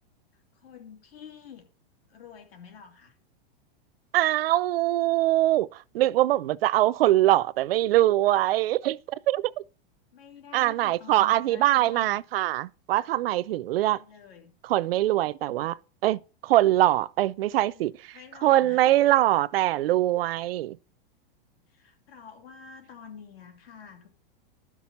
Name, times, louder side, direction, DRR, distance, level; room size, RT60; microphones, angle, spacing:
voice 1, 0.3-1.7 2.1-3.1 10.1-12.2 13.7-14.5 17.5-19.2 20.2-20.5 21.7-24.1, left 7 dB, 85° left, 2.9 m, -48 dB
voice 2, 4.1-5.7 5.9-9.0 9.3-9.5 10.5-14.0 14.7-15.8 16.0-17.9 18.4-20.8, right 15 dB, 80° right, 0.5 m, -23 dB
12.0 x 6.1 x 4.2 m
supercardioid pair, 165°, 29 cm